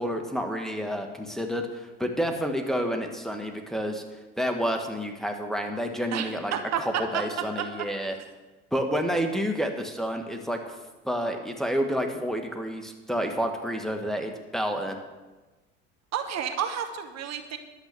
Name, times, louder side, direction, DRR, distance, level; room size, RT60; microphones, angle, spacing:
voice 1, 0.0-4.0 4.4-8.1 8.7-10.8 11.0-15.0, equal, ahead, 3 dB, 1.7 m, -29 dB
voice 2, 6.1-6.8 7.1-7.2 16.1-17.6, right 8 dB, 50° right, 7 dB, 1.5 m, -30 dB
12.0 x 7.9 x 6.9 m, 1.2 s
hypercardioid pair, 90°, 35 cm